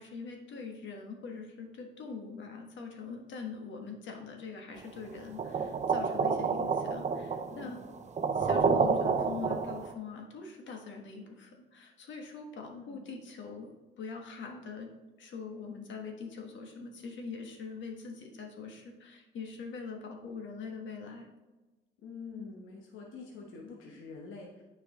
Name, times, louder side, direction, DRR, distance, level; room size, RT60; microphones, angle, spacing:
voice 1, 0.0-7.8 8.3-14.9 15.2-21.3, left 5 dB, 70° left, 3 dB, 1.4 m, -43 dB
sound 1, 5.4-9.9, right 5 dB, 35° right, 0.6 m, -29 dB
voice 2, 7.5-7.8 12.7-13.0 22.0-24.6, left 4 dB, 85° left, -1 dB, 1.2 m, -46 dB
9.0 x 4.8 x 3.7 m, 1.2 s
cardioid pair, 90°, 20 cm